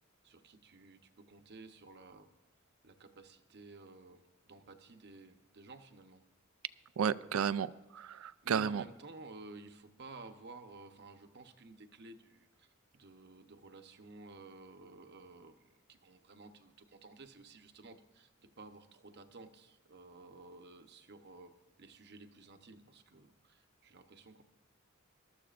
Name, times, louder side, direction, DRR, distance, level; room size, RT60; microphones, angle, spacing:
voice 1, 0.2-2.3 2.8-6.2 8.0-21.5 21.8-24.4, right 3 dB, 55° right, 7 dB, 0.9 m, -54 dB
voice 2, 7.0-8.8, right 7 dB, 85° right, 17 dB, 0.4 m, -33 dB
21.0 x 13.0 x 2.5 m, 1.0 s
head